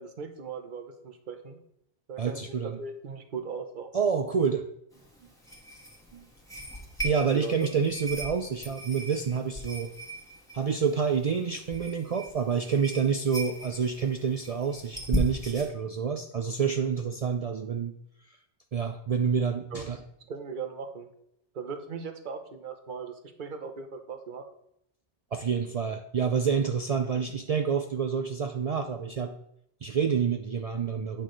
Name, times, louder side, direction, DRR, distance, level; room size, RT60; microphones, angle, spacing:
voice 1, 0.0-1.6 2.1-3.9 7.3-7.7 19.7-19.9 20.3-21.1 21.5-24.4, right 5 dB, 50° right, 6 dB, 0.9 m, -38 dB
voice 2, 2.2-2.8 3.9-4.6 6.1-6.3 7.0-9.9 10.5-18.0 18.7-20.0 25.3-29.3 29.8-31.2, right 6 dB, 70° right, 5 dB, 0.3 m, -28 dB
sound 1, 4.9-15.7, equal, 5° left, 1.4 m, -38 dB
8.7 x 6.1 x 3.2 m, 0.75 s
omnidirectional pair, 1.2 m